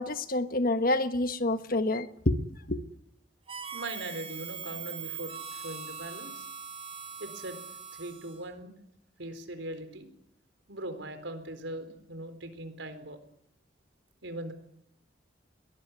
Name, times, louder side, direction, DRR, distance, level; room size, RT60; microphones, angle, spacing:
voice 1, 0.0-2.4 2.7-2.8, left 2 dB, 50° left, 1.4 m, -28 dB
Harmonica, 3.5-8.5, right 6 dB, 30° right, 4.6 m, -41 dB
voice 2, 3.7-6.5 7.2-7.6 7.9-8.8 9.2-10.1 10.7-13.2 14.2-14.5, right 1 dB, 85° right, 4.3 m, -40 dB
22.0 x 19.0 x 9.6 m
head